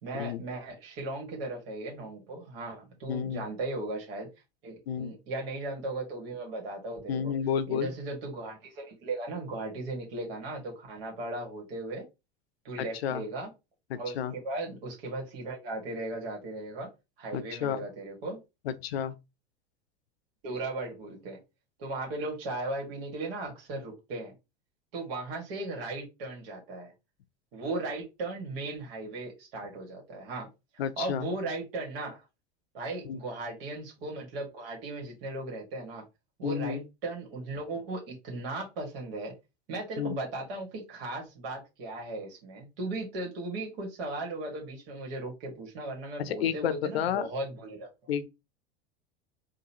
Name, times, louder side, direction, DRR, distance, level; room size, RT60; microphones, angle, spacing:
voice 1, 0.0-4.3 4.6-7.3 7.7-12.0 12.6-13.5 14.0-16.9 17.2-18.4 20.4-21.4 21.8-24.3 24.9-26.9 27.5-30.5 31.0-32.3 32.7-36.0 36.4-39.3 39.7-47.9, right 2 dB, 70° right, 1.8 m, -37 dB
voice 2, 3.1-3.4 4.9-5.1 7.1-7.9 12.8-13.2 13.9-14.3 17.3-17.8 18.6-19.1 30.8-31.3 33.0-33.2 36.4-36.8 40.0-40.2 46.2-47.3 48.1-48.3, left 8 dB, 85° left, 0.6 m, -31 dB
3.8 x 2.6 x 2.9 m
hypercardioid pair, 100°, 30 cm